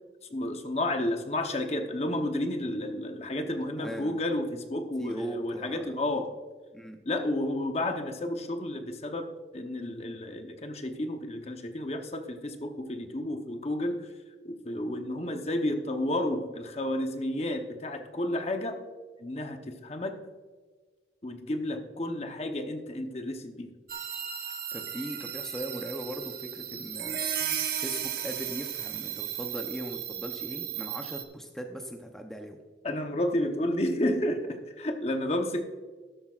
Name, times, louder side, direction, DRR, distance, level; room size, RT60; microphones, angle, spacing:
voice 1, 0.3-6.4 7.0-14.1 14.4-18.8 19.2-20.2 21.2-23.7 32.8-35.6, left 1 dB, 35° left, 6 dB, 0.8 m, -31 dB
voice 2, 3.8-4.2 5.0-5.9 6.7-7.0 24.7-27.2 27.8-32.6, right 1 dB, 5° left, 3 dB, 0.7 m, -39 dB
sound 1, 23.9-31.2, right 9 dB, 55° right, 1.0 m, -35 dB
13.0 x 12.0 x 2.4 m, 1.4 s
head